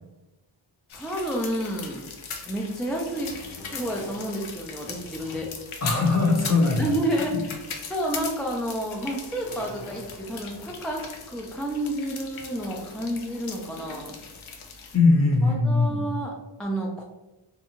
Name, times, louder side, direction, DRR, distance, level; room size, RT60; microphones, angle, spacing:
sound 1, 0.9-15.0, left 5 dB, 85° left, 0.5 m, -40 dB
voice 1, 0.9-2.0 2.5-3.3 3.7-5.5 6.8-14.1 15.4-17.0, right 1 dB, ahead, -1 dB, 0.3 m, -30 dB
Zipper (clothing), 2.1-6.4 6.8-6.9 7.7-11.1 12.3-12.5, left 1 dB, 65° left, 0.8 m, -48 dB
voice 2, 5.8-6.9 14.9-16.0, left 3 dB, 35° left, -1 dB, 0.7 m, -20 dB
2.6 x 2.2 x 2.9 m, 1.1 s
wide cardioid pair, 50°, 48 cm